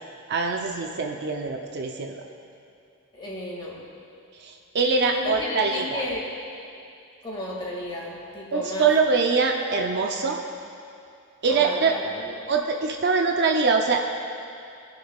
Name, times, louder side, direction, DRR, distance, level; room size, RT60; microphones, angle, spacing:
voice 1, 0.3-2.1 4.4-6.0 8.5-10.4 11.4-11.9 12.5-14.0, right 4 dB, 50° right, 3 dB, 0.6 m, -23 dB
voice 2, 3.1-3.8 5.1-6.2 7.2-8.9 11.5-12.5, left 1 dB, 20° left, -4 dB, 2.1 m, -33 dB
20.5 x 6.9 x 2.4 m, 2.6 s
head